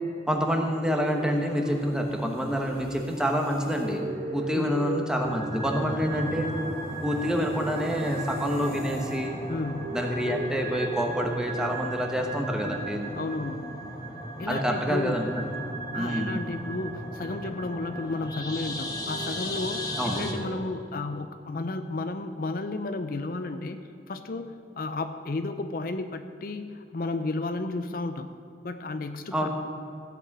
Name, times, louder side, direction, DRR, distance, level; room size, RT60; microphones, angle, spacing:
voice 1, 0.3-4.0 4.3-6.5 7.0-9.4 9.9-13.0 14.5-15.5 15.9-16.3 20.0-20.2 29.3-29.5, equal, 5° right, 2 dB, 1.2 m, -27 dB
sound 1, 0.6-13.8 16.0-17.8 18.1-20.5, right 1 dB, 55° right, 1.9 m, -40 dB
sound 2, 5.2-20.3, right 1 dB, 20° left, 1.3 m, -36 dB
voice 2, 9.5-9.9 13.2-13.7 14.4-15.2 15.9-28.3 28.6-29.5, left 2 dB, 55° left, 9 dB, 0.5 m, -33 dB
15.0 x 8.3 x 6.1 m, 2.6 s
head